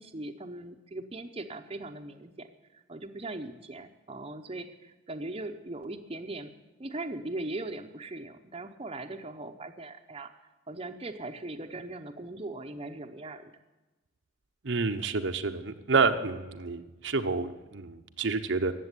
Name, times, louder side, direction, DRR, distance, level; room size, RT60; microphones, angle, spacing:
voice 1, 0.0-2.5 2.7-6.5 6.8-10.3 10.7-13.5, right 2 dB, 30° right, 5 dB, 0.8 m, -39 dB
voice 2, 14.6-18.7, right 4 dB, 65° right, 7 dB, 0.8 m, -29 dB
15.5 x 7.7 x 9.7 m, 1.1 s
head